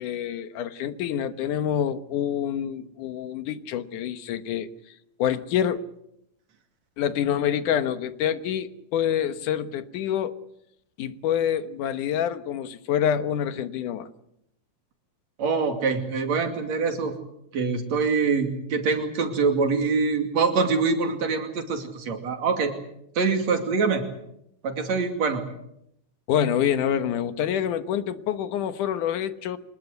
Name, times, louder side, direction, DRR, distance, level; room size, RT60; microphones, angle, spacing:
voice 1, 0.0-4.7 5.2-5.8 7.0-10.4 11.0-14.1 26.3-29.6, left 9 dB, 85° left, 11 dB, 2.7 m, -26 dB
voice 2, 15.4-17.1 17.5-22.7 23.2-24.1 24.6-25.4, right 4 dB, 60° right, 6 dB, 3.7 m, -24 dB
25.5 x 21.0 x 8.0 m, 0.79 s
omnidirectional pair, 3.5 m